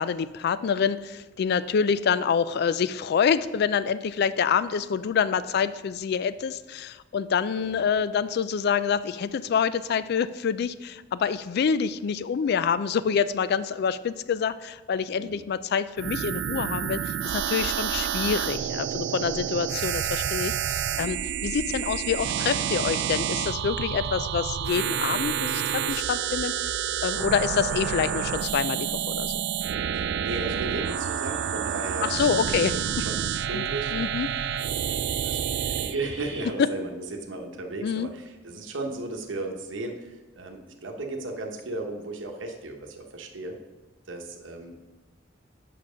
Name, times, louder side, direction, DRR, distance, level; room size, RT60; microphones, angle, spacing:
voice 1, 0.0-26.7 27.0-29.4 32.0-32.7 33.5-33.6 33.9-34.3 37.8-38.1, left 7 dB, 55° left, 15 dB, 0.3 m, -27 dB
voice 2, 7.6-7.9 15.1-15.4 29.9-34.1 34.8-43.6 44.1-44.8, right 2 dB, 85° right, 3 dB, 1.0 m, -36 dB
sound 1, 16.0-35.9, right 9 dB, 65° right, 0.3 m, -29 dB
sound 2, 30.4-36.5, right 3 dB, 30° right, 1.9 m, -44 dB
7.5 x 5.9 x 5.0 m, 1.2 s
head